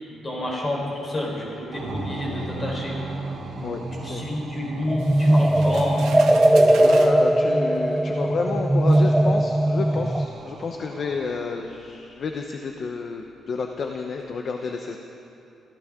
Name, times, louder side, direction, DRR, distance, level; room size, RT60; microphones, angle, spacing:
voice 1, 0.1-2.9 4.0-6.0, left 1 dB, 25° left, -2 dB, 4.1 m, -29 dB
sound 1, 1.7-11.6, right 2 dB, 55° right, 2.3 m, -36 dB
voice 2, 3.6-4.3 6.8-15.0, left 4 dB, 45° left, 3 dB, 0.8 m, -30 dB
sound 2, 4.9-10.3, right 1 dB, 5° right, 0.4 m, -19 dB
sound 3, 5.0-7.2 8.2-8.3 8.9-9.1, right 6 dB, 85° right, 1.2 m, -39 dB
25.5 x 15.0 x 3.7 m, 2.7 s
cardioid pair, 160°, 0 cm